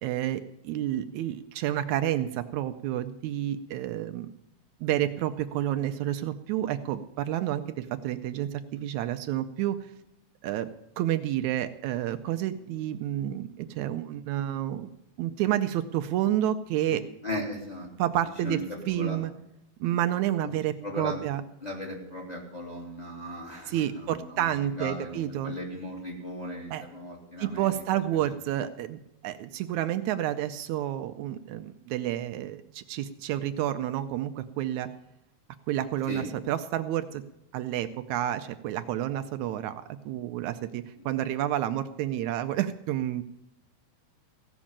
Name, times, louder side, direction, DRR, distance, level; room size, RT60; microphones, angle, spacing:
voice 1, 0.0-4.3 4.8-9.8 10.4-10.7 11.0-14.9 15.2-17.0 18.0-18.6 18.9-19.3 19.8-21.4 23.7-25.5 26.7-26.8 27.4-34.9 35.7-37.2 37.5-43.2, right 12 dB, 80° right, 9 dB, 1.9 m, -30 dB
voice 2, 16.9-17.9 18.4-18.6 18.9-19.2 20.4-20.5 20.8-21.2 21.6-24.5 24.8-28.3 36.1-36.3 41.0-41.1, left 1 dB, 15° left, -1 dB, 2.6 m, -37 dB
16.0 x 6.3 x 8.7 m, 0.82 s
omnidirectional pair, 3.4 m